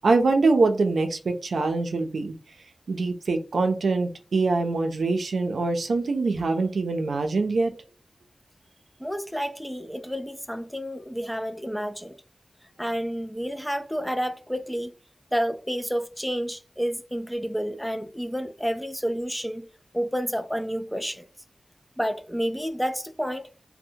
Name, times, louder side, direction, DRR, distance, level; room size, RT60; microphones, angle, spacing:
voice 1, 0.0-2.3 2.9-7.7, right 3 dB, 90° right, 0.4 m, -24 dB
voice 2, 9.0-12.2 12.8-14.9 15.3-19.6 19.9-21.3 22.0-23.5, equal, 5° left, 0.3 m, -30 dB
2.6 x 2.0 x 2.7 m
wide cardioid pair, 65°, 0 cm